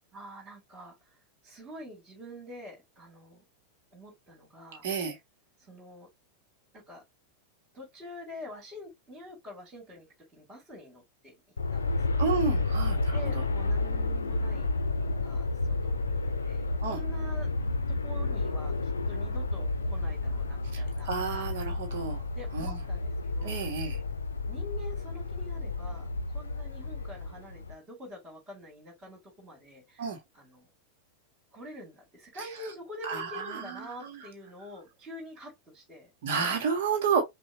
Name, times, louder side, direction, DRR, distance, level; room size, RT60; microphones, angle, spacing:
voice 1, 0.1-1.0 1.4-3.4 3.9-4.9 5.6-6.1 6.7-7.0 7.7-10.1 10.3-11.4 11.7-12.3 13.1-17.5 17.9-21.6 22.4-23.6 24.5-30.1 30.3-30.7 31.5-36.1, left 1 dB, 25° right, 3.3 m, -46 dB
voice 2, 4.8-5.2 12.2-13.0 16.8-17.0 20.7-22.2 22.5-22.8 23.4-24.0 30.0-30.2 33.1-33.7 34.0-34.2 36.2-37.2, right 6 dB, 55° right, 1.5 m, -30 dB
Aircraft, 11.6-27.7, left 3 dB, 75° left, 0.6 m, -31 dB
6.1 x 2.6 x 2.9 m
figure-of-eight pair, 90°, 0 cm